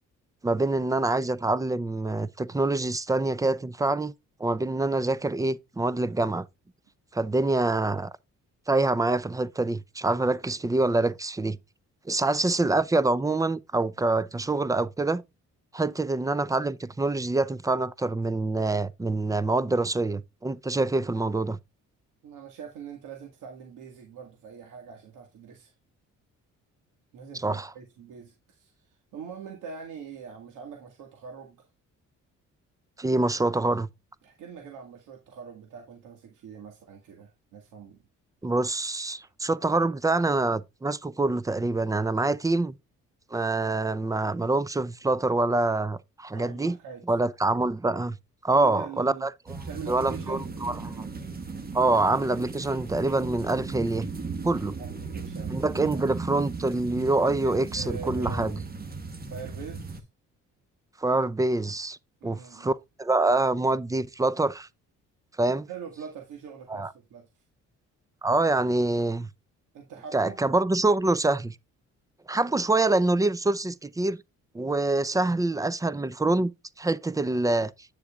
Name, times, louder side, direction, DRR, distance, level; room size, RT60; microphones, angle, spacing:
voice 1, 0.4-4.1 4.4-6.4 7.1-8.1 8.7-11.6 12.1-15.2 15.7-21.6 27.3-27.7 33.0-33.9 38.4-42.8 43.3-46.8 47.1-48.2 48.4-49.3 49.9-51.1 51.7-54.1 54.4-54.7 55.5-58.6 61.0-62.0 62.2-64.7 65.4-65.7 66.7-66.9 68.2-69.3 70.1-71.6 72.3-74.2 74.5-76.5 76.8-77.7, right 2 dB, 10° right, 0.5 m, -25 dB
voice 2, 22.2-25.7 27.1-31.7 34.2-38.0 46.3-47.0 48.5-49.3 49.6-50.4 54.8-56.0 57.2-58.6 59.2-60.0 62.2-62.7 65.7-67.4 69.7-70.4, right 7 dB, 85° right, 1.8 m, -43 dB
sound 1, 49.5-60.0, right 4 dB, 30° right, 1.4 m, -36 dB
9.6 x 6.9 x 2.4 m
cardioid pair, 90°, 30 cm